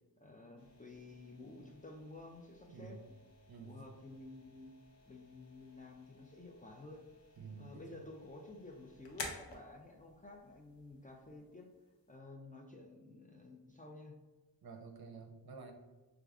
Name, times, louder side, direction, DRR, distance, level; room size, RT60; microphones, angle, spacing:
voice 1, 0.2-3.2 3.6-4.7 5.0-7.0 7.6-11.7 12.1-14.1, left 2 dB, 20° left, 1 dB, 0.4 m, -52 dB
sound 1, 0.6-12.2, left 3 dB, 85° left, 0.6 m, -54 dB
voice 2, 2.7-3.0 3.5-3.8 7.4-8.0 14.6-15.7, right 5 dB, 60° right, 4 dB, 0.6 m, -50 dB
4.7 x 2.4 x 2.3 m, 1.2 s
wide cardioid pair, 55°, 42 cm